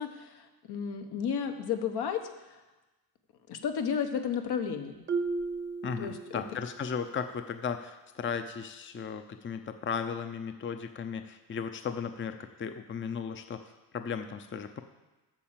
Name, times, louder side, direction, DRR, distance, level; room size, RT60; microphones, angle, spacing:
voice 1, 0.0-2.2 2.5-2.6 3.5-4.9 6.0-6.4, left 7 dB, 70° left, 6 dB, 1.1 m, -33 dB
Marimba xylophone, 5.1-6.8, right 4 dB, 25° right, 0.8 m, -34 dB
voice 2, 5.8-13.6 13.9-14.8, left 6 dB, 30° left, 8 dB, 0.6 m, -36 dB
9.2 x 6.5 x 7.4 m, 1.1 s
cardioid pair, 105°, 41 cm